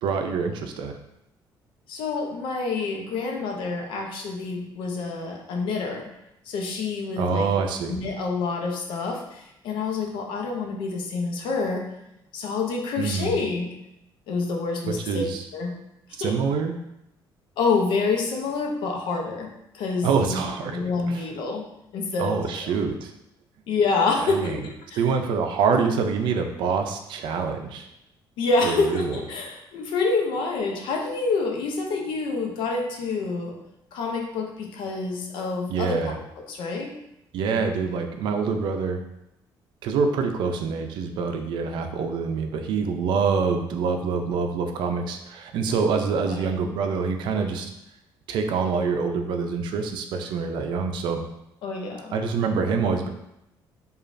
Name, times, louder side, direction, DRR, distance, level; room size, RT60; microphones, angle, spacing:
voice 1, 0.0-0.9 7.2-7.9 13.0-13.3 14.9-15.4 16.2-16.8 20.0-20.8 21.1-21.2 22.2-23.1 24.2-24.6 24.9-27.9 28.6-29.2 35.7-36.2 37.3-39.0 39.8-47.7 48.3-51.2 52.1-53.1, right 5 dB, 70° right, 5 dB, 0.4 m, -26 dB
voice 2, 1.9-6.1 6.5-7.5 7.9-11.8 12.3-13.7 14.3-15.2 15.5-15.7 16.2-16.3 17.6-19.5 19.7-21.6 21.9-22.7 23.7-24.6 24.9-25.0 28.4-33.5 33.9-36.2 36.5-36.9 46.3-46.5 51.6-52.2, left 4 dB, 75° left, 1 dB, 0.7 m, -27 dB
5.0 x 2.4 x 2.5 m, 0.84 s
cardioid pair, 175°, 8 cm